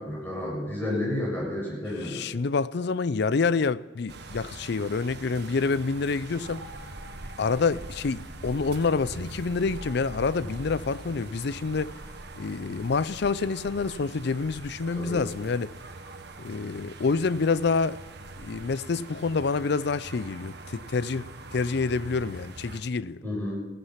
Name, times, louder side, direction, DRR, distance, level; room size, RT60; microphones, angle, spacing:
voice 1, 0.0-2.2 14.9-15.2 23.2-23.7, left 1 dB, 10° left, 6.6 m, -31 dB
voice 2, 2.0-6.6 7.4-11.9 12.3-15.7 16.4-18.0 18.4-23.2, left 4 dB, 60° left, 0.5 m, -27 dB
sound 1, 4.1-22.8, right 2 dB, 60° right, 1.4 m, -43 dB
16.5 x 14.0 x 5.8 m
head